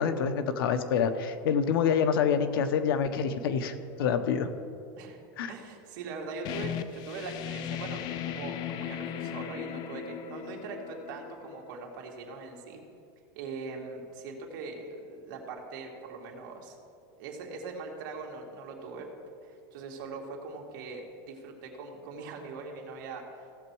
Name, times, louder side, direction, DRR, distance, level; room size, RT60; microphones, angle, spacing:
voice 1, 0.0-4.5 5.4-5.5, left 7 dB, 90° left, 9 dB, 0.9 m, -27 dB
voice 2, 5.5-12.8 13.3-16.8 17.2-19.1 19.4-23.5, right 4 dB, 65° right, 0 dB, 2.2 m, -41 dB
sound 1, 6.4-11.9, left 10 dB, 35° left, 0.5 m, -37 dB
16.5 x 7.1 x 4.7 m, 2.5 s
supercardioid pair, 165°, 12 cm